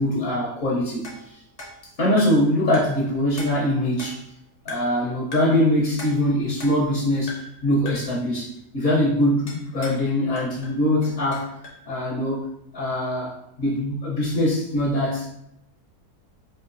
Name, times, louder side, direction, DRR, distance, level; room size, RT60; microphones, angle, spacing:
voice 1, 0.0-1.4 2.0-4.2 4.6-7.3 7.6-11.5 11.9-12.5 12.7-15.3, left 1 dB, 60° left, -5 dB, 1.1 m, -23 dB
sound 1, 1.0-2.5 2.7-3.1 3.4-4.3 4.7-5.0 5.3-5.6 6.0-7.0 7.3-7.6 7.9-8.2 9.5-10.1 10.4-11.8, left 2 dB, 40° left, 0.5 m, -40 dB
4.6 x 2.4 x 2.5 m, 0.80 s
omnidirectional pair, 1.7 m